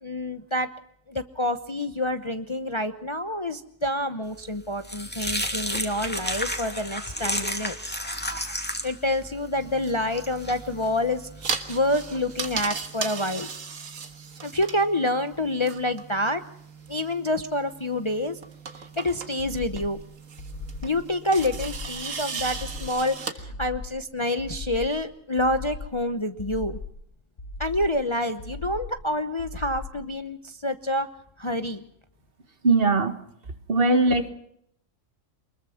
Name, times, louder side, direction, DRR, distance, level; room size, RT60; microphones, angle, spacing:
voice 1, 0.0-0.7 1.1-8.0 8.8-13.5 14.4-16.4 16.9-18.4 18.8-20.0 20.8-26.8 27.6-31.1 31.4-31.8, left 1 dB, 25° left, 8 dB, 0.8 m, -27 dB
sound 1, 4.3-12.6, equal, 5° left, 2.4 m, -33 dB
sound 2, 9.5-23.3, right 5 dB, 80° right, 1.9 m, -37 dB
sound 3, 19.4-20.0 20.4-21.0 21.4-22.0 22.4-23.0 23.4-24.0 24.4-25.0 25.4-26.0 26.4-27.0 27.4-28.0 28.4-29.0 29.4-30.0, left 2 dB, 65° left, 4.8 m, -38 dB
voice 2, 32.6-33.2 33.7-34.3, right 3 dB, 45° right, 10 dB, 1.5 m, -20 dB
24.0 x 21.5 x 5.7 m, 0.70 s
omnidirectional pair, 1.4 m